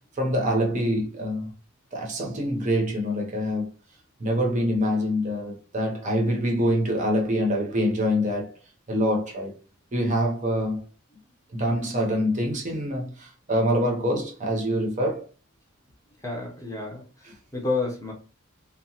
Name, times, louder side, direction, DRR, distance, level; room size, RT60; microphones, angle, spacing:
voice 1, 0.2-1.5 1.9-3.7 4.2-8.5 8.9-9.5 9.9-10.8 11.5-15.2, equal, 35° right, 0.6 m, -25 dB
voice 2, 16.2-18.1, left 3 dB, 15° left, 0.6 m, -30 dB
2.7 x 2.1 x 2.8 m
head